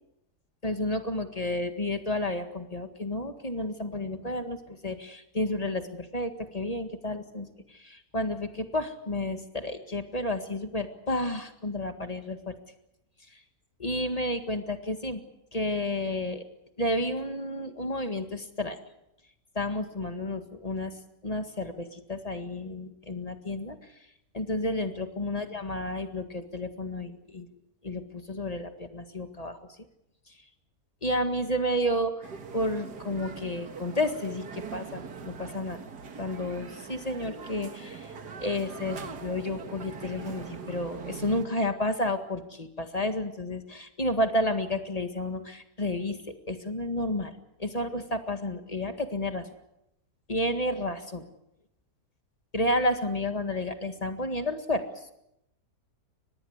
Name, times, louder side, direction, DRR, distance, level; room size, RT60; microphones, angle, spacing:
voice 1, 0.6-12.5 13.3-13.4 13.8-15.2 15.5-16.4 16.8-18.8 19.6-20.9 21.2-23.8 24.3-27.5 27.8-29.6 31.0-32.3 32.5-35.8 36.2-38.1 38.4-47.3 47.6-49.5 50.3-51.2 52.5-55.1, left 1 dB, 25° left, 7 dB, 1.8 m, -31 dB
sound 1, 32.2-41.5, right 5 dB, 75° right, 2.2 m, -42 dB
24.5 x 20.0 x 8.1 m, 0.84 s
omnidirectional pair, 1.8 m